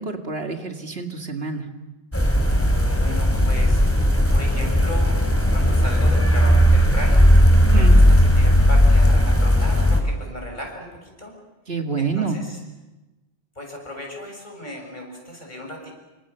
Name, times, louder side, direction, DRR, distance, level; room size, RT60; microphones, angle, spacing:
voice 1, 0.0-1.7 7.7-8.0 11.7-12.4, right 5 dB, 75° right, 4 dB, 2.4 m, -27 dB
sound 1, 2.1-10.0, equal, 15° left, 3.8 m, -16 dB
voice 2, 2.6-5.1 5.5-7.3 7.7-11.3 12.0-12.6 13.6-16.0, equal, 45° left, 1 dB, 6.9 m, -36 dB
27.5 x 25.5 x 6.9 m, 1.1 s
omnidirectional pair, 1.1 m